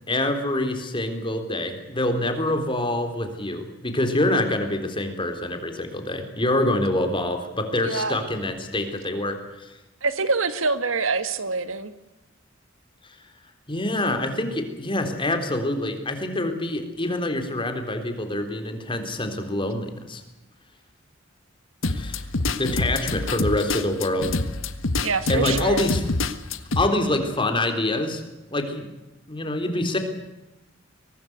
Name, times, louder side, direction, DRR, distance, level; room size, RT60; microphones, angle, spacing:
voice 1, 0.1-9.4 13.7-20.2 21.9-22.2 22.6-24.4 25.3-26.0 26.8-28.2 28.5-28.9 29.3-30.0, left 1 dB, 25° left, 6 dB, 3.8 m, -25 dB
voice 2, 7.8-8.2 10.0-11.9 25.0-25.9, right 4 dB, 85° right, 11 dB, 1.9 m, -25 dB
sound 1, 21.8-26.8, left 2 dB, 80° left, 1.6 m, -26 dB
23.5 x 19.0 x 8.2 m, 0.99 s
head